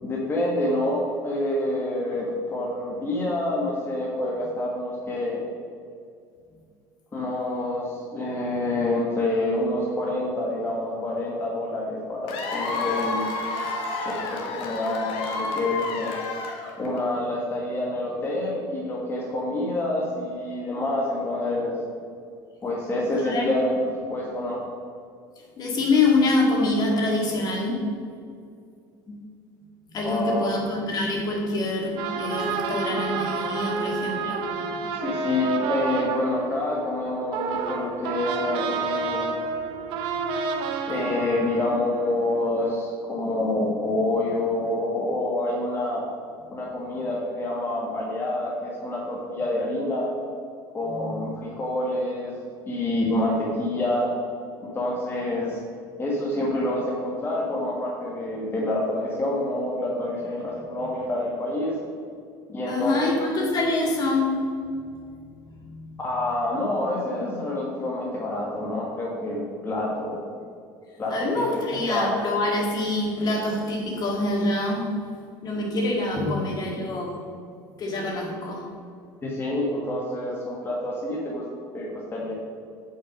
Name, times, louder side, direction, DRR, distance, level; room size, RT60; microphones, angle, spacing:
voice 1, 0.0-5.4 7.1-13.2 14.0-16.1 16.8-21.8 22.6-24.6 29.1-29.2 30.0-30.5 34.9-39.4 40.9-46.0 46.5-50.1 50.7-52.3 52.7-54.1 54.6-55.6 56.0-61.7 62.5-63.2 66.0-70.2 71.0-71.5 71.9-72.2 76.1-76.3 79.2-81.4 81.7-82.3, left 1 dB, 25° left, -4 dB, 1.5 m, -27 dB
Cheering / Applause / Crowd, 12.3-17.0, left 3 dB, 65° left, 1.5 m, -30 dB
voice 2, 23.2-23.6 25.6-27.9 29.9-35.0 50.9-51.3 62.7-64.4 65.6-65.9 71.1-74.9 75.4-77.3 77.8-78.7, left 2 dB, 45° left, 0 dB, 2.0 m, -25 dB
sound 1, 32.0-42.5, right 5 dB, 65° right, 0.9 m, -30 dB
8.2 x 5.6 x 5.1 m, 2.3 s
supercardioid pair, 115°, 10 cm